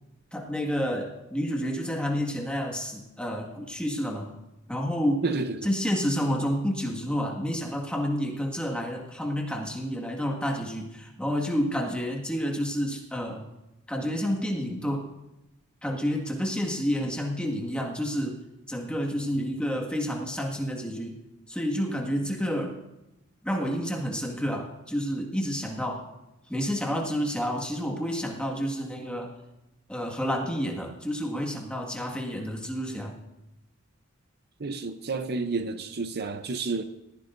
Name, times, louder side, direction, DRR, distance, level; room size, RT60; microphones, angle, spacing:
voice 1, 0.3-4.3 4.7-5.2 5.6-13.5 13.9-15.1 15.8-18.4 18.7-21.2 21.5-22.8 23.4-26.0 26.5-29.3 29.9-33.1, equal, 5° left, 1.8 m, -29 dB
voice 2, 5.2-5.7 34.6-36.8, right 3 dB, 50° right, 0.7 m, -30 dB
19.5 x 15.0 x 2.6 m
head